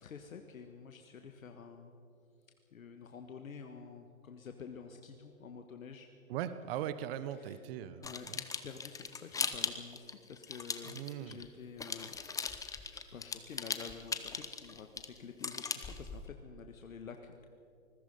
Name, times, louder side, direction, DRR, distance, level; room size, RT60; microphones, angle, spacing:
voice 1, 0.0-1.9 2.7-6.1 7.3-7.6 8.0-12.3 12.9-17.5, left 6 dB, 75° left, 5 dB, 1.6 m, -49 dB
voice 2, 6.3-8.0 10.8-11.4, right 11 dB, 45° right, 13 dB, 1.1 m, -39 dB
sound 1, 8.0-11.5 11.8-16.3, left 5 dB, 10° left, 0.9 m, -39 dB
25.5 x 20.5 x 5.4 m, 2.5 s
hypercardioid pair, 120°, 41 cm